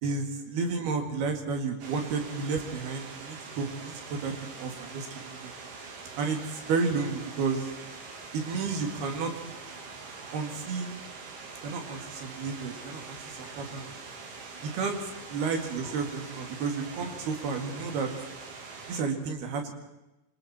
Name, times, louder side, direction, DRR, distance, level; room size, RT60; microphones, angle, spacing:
voice 1, 0.0-5.5 6.2-7.7 8.3-9.3 10.3-10.9 11.6-13.9 14.6-15.0 15.3-18.1 18.9-19.7, right 4 dB, 60° right, 4 dB, 3.9 m, -32 dB
sound 1, 1.8-19.0, right 4 dB, 85° right, 5.6 m, -44 dB
26.0 x 25.5 x 4.3 m, 0.98 s
omnidirectional pair, 5.3 m